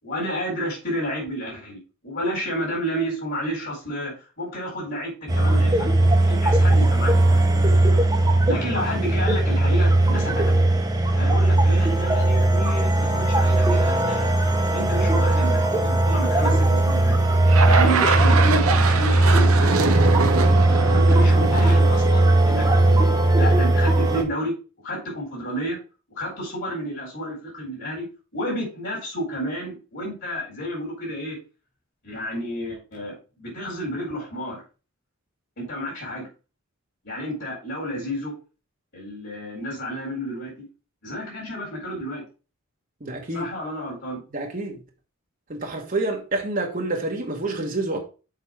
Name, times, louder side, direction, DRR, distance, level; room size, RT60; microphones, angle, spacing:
voice 1, 0.0-7.5 8.5-10.6 11.1-14.3 14.7-17.1 17.6-19.9 20.9-24.5 24.8-25.8 26.1-28.1 28.3-31.4 32.0-34.6 35.6-36.3 37.0-38.3 38.9-40.5 41.0-42.2 43.3-44.2, equal, 50° left, 4.1 m, -31 dB
sound 1, 5.3-24.2, right 2 dB, 15° right, 1.2 m, -18 dB
sound 2, 17.5-22.8, right 4 dB, 75° right, 1.0 m, -24 dB
voice 2, 43.0-43.5 44.3-44.8 45.5-48.0, right 2 dB, 40° right, 1.4 m, -28 dB
6.8 x 5.0 x 4.8 m
head